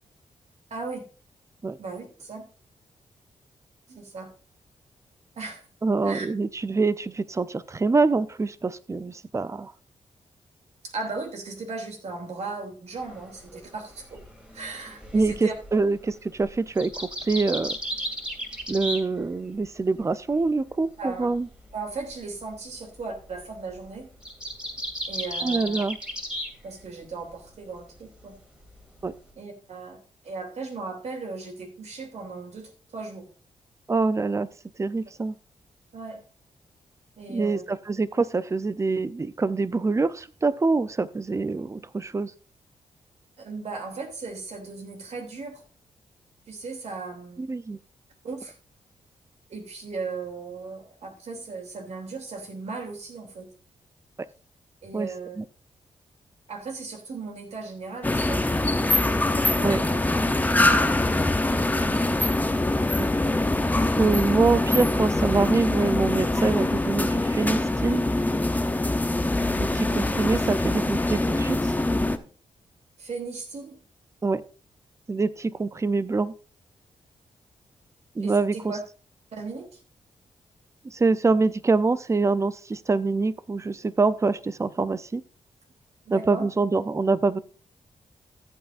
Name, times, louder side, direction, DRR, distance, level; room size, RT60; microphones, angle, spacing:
voice 1, 0.7-1.1 1.8-2.4 3.9-4.3 5.3-5.6 6.0-6.3 10.8-14.2 14.5-15.5 21.0-21.3 21.7-24.1 25.1-25.8 26.6-28.4 29.3-33.3 35.9-36.2 37.2-37.6 43.4-45.6 46.5-47.4 48.2-48.6 49.5-53.5 54.8-55.4 56.5-58.5 59.2-60.0 60.5-61.1 61.5-62.2 62.8-62.9 69.9-70.0 73.0-73.8 78.2-78.8 79.3-79.8 86.1-86.5, right 4 dB, 65° right, 3 dB, 3.0 m, -37 dB
voice 2, 5.8-9.7 15.1-17.8 18.7-21.5 25.4-26.0 29.0-29.1 33.9-34.5 34.8-35.3 37.3-42.3 47.4-47.8 54.9-55.1 55.4-55.5 59.6-59.8 63.0-63.1 64.0-68.0 69.6-71.8 74.2-74.4 75.1-76.3 78.2-78.6 80.8-85.2 86.1-87.4, right 3 dB, 25° right, 16 dB, 0.6 m, -25 dB
sound 1, 13.0-19.7 20.0-26.5 26.8-27.5 27.9-29.3, equal, 10° right, 2.6 m, -36 dB
sound 2, 58.0-72.2, left 2 dB, 15° left, 0.8 m, -23 dB
14.5 x 8.1 x 2.6 m, 0.36 s
cardioid pair, 80°, 12 cm